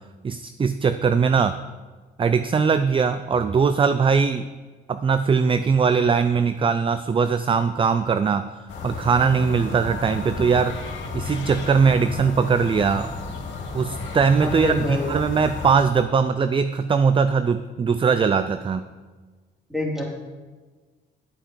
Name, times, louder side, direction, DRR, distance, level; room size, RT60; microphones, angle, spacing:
voice 1, 0.2-1.5 2.2-4.5 4.9-8.6 8.8-10.8 11.1-13.1 13.7-18.8, right 5 dB, 25° right, 11 dB, 0.4 m, -20 dB
sound 1, 8.7-15.7, left 4 dB, 65° left, 2.5 m, -33 dB
voice 2, 14.4-15.1 19.7-20.0, left 1 dB, ahead, -3 dB, 3.2 m, -26 dB
11.5 x 7.9 x 4.8 m, 1.4 s
cardioid pair, 90°, 20 cm